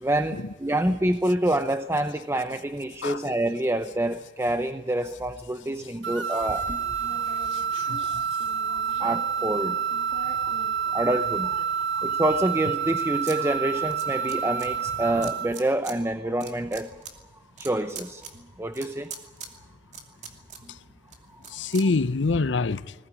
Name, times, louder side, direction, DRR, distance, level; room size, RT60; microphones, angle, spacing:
voice 1, 0.0-6.6 8.7-9.8 10.9-11.6 11.9-16.9 17.6-18.2 18.6-19.1, right 1 dB, 15° right, 0.7 m, -27 dB
sound 1, 6.0-15.6, right 7 dB, 85° right, 1.3 m, -28 dB
sound 2, 6.4-11.5 12.0-13.4 13.6-14.7 15.2-16.0 16.3-22.4, right 3 dB, 40° right, 2.7 m, -44 dB
voice 2, 7.1-8.3 20.7-20.8 21.5-22.9, left 3 dB, 85° left, 0.7 m, -27 dB
20.5 x 17.5 x 9.9 m
head